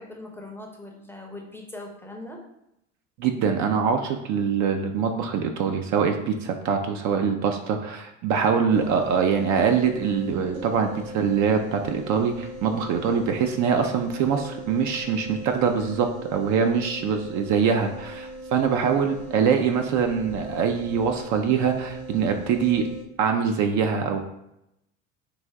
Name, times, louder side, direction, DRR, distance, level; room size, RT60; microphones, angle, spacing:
voice 1, 0.0-2.4 17.6-18.0, left 2 dB, 5° left, 0 dB, 0.6 m, -41 dB
voice 2, 3.2-10.9 11.1-22.9 23.2-24.2, right 6 dB, 50° right, 5 dB, 0.5 m, -23 dB
sound 1, 8.7-23.0, right 1 dB, 90° right, 0.9 m, -40 dB
3.3 x 2.5 x 3.5 m, 0.84 s
hypercardioid pair, 75°, 39 cm